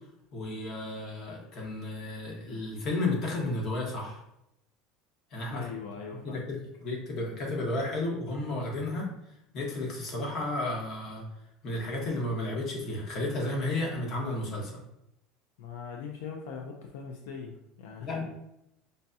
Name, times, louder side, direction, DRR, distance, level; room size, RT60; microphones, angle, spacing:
voice 1, 0.3-4.2 5.3-5.6 6.2-9.1 9.5-11.2 11.6-14.8 18.0-18.2, left 2 dB, 45° left, -2 dB, 1.3 m, -32 dB
voice 2, 5.5-6.4 15.6-18.1, left 6 dB, 85° left, 1 dB, 0.5 m, -41 dB
5.1 x 2.3 x 2.7 m, 0.80 s
supercardioid pair, 135°, 0 cm